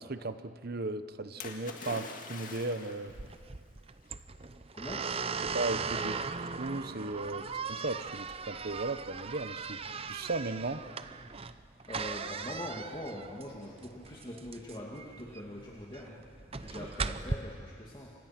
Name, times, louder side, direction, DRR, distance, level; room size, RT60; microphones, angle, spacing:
voice 1, 0.1-3.1 5.4-9.8 10.1-10.8, right 2 dB, 50° right, 12 dB, 0.9 m, -36 dB
Splash splatter, 1.4-3.2 4.1-4.2, left 4 dB, 45° left, 2.0 m, -44 dB
sound 1, 3.1-17.3, right 5 dB, 30° right, 0.7 m, -38 dB
voice 2, 4.7-5.1 11.9-16.2 16.5-18.1, left 1 dB, 25° left, -3 dB, 2.2 m, -43 dB
29.5 x 25.5 x 6.0 m, 2.4 s
head